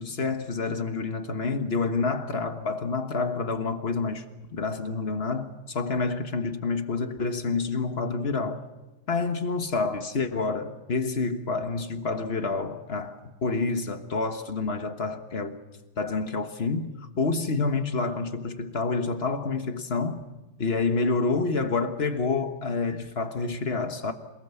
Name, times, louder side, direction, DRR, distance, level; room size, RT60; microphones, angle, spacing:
voice 1, 0.0-4.2 4.5-8.6 9.1-15.6 16.0-20.2 20.6-24.1, left 4 dB, 35° left, 1.2 m, -28 dB
27.5 x 19.0 x 7.1 m
omnidirectional pair, 2.4 m